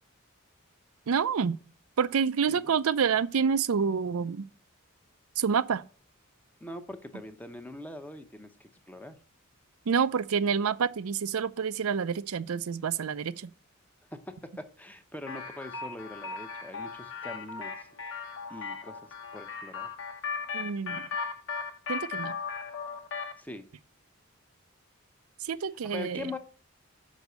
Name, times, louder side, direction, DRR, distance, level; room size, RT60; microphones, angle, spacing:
voice 1, 1.1-1.6 2.0-4.5 5.4-5.8 9.9-13.5 20.5-21.1 21.9-22.4 25.4-26.3, right 6 dB, 85° right, 0.5 m, -28 dB
voice 2, 2.5-2.8 6.6-9.2 14.1-17.9 18.5-19.0 19.3-19.9 23.4-23.6 25.9-26.4, left 2 dB, 10° left, 0.8 m, -42 dB
sound 1, 15.3-23.4, left 5 dB, 65° left, 1.1 m, -37 dB
6.3 x 5.3 x 6.8 m
head